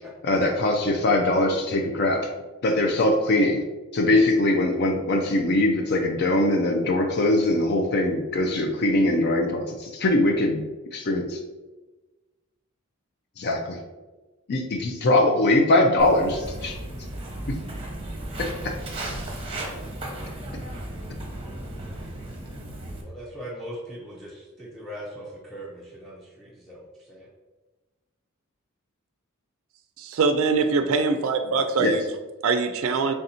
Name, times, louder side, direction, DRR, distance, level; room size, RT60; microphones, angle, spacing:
voice 1, 0.2-2.3 2.6-3.6 3.9-10.6 10.9-11.4 13.4-13.8 14.5-16.7 17.5-17.6 18.4-18.5 31.8-31.9, left 1 dB, 50° left, 2 dB, 0.4 m, -22 dB
Walk footsteps, 16.0-23.0, right 1 dB, 25° right, 0.8 m, -35 dB
voice 2, 23.0-27.3 32.8-33.1, equal, ahead, -6 dB, 0.5 m, -40 dB
voice 3, 30.0-31.9 32.4-33.1, right 4 dB, 70° right, 7 dB, 0.3 m, -23 dB
3.4 x 2.6 x 4.2 m, 1.2 s
head